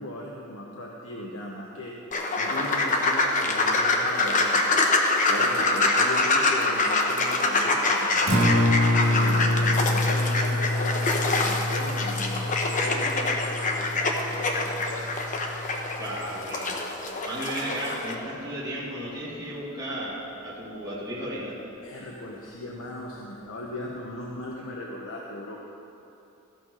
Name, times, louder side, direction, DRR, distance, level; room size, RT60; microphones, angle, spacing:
voice 1, 0.0-1.9 2.3-4.9 5.3-8.4 9.0-15.1 21.8-25.6, left 1 dB, 85° left, -2 dB, 1.0 m, -37 dB
sound 1, 2.1-18.1, left 2 dB, 40° left, 1.0 m, -25 dB
Acoustic guitar, 8.1-16.3, left 1 dB, 80° right, 1.9 m, -27 dB
voice 2, 16.0-16.9 17.2-21.6, right 1 dB, 20° right, -9 dB, 2.1 m, -34 dB
15.0 x 5.7 x 6.2 m, 2.9 s
head